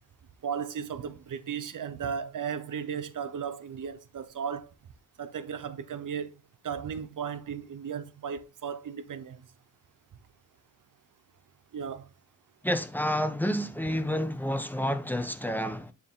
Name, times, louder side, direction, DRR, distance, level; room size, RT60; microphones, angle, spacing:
voice 1, 0.4-4.7 5.2-6.3 6.6-9.5 11.7-12.1, right 7 dB, 80° right, 0.9 m, -35 dB
voice 2, 12.6-15.9, equal, 5° left, 1.1 m, -29 dB
9.4 x 4.5 x 3.7 m
cardioid pair, 80°, 31 cm